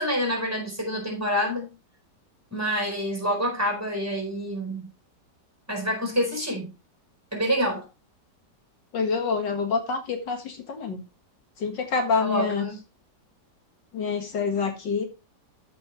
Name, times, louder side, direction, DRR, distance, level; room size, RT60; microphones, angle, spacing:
voice 1, 0.0-1.7 2.5-4.9 5.7-6.7 7.3-7.8 12.2-12.8, equal, 10° right, 4.2 m, -27 dB
voice 2, 8.9-11.0 11.6-12.7 13.9-15.0, left 5 dB, 75° left, 2.3 m, -27 dB
14.0 x 5.5 x 3.1 m
omnidirectional pair, 1.9 m